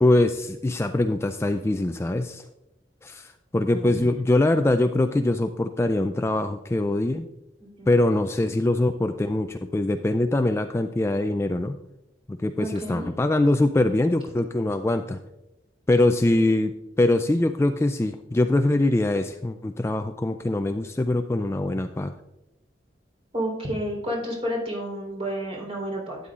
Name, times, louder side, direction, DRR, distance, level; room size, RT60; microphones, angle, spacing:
voice 1, 0.0-2.4 3.0-7.3 7.9-11.7 12.3-15.2 15.9-22.1, left 2 dB, 15° left, 8 dB, 0.3 m, -23 dB
voice 2, 7.6-7.9 12.6-13.1 23.3-26.2, equal, 35° right, -2 dB, 3.6 m, -30 dB
12.0 x 9.3 x 2.4 m, 0.91 s
head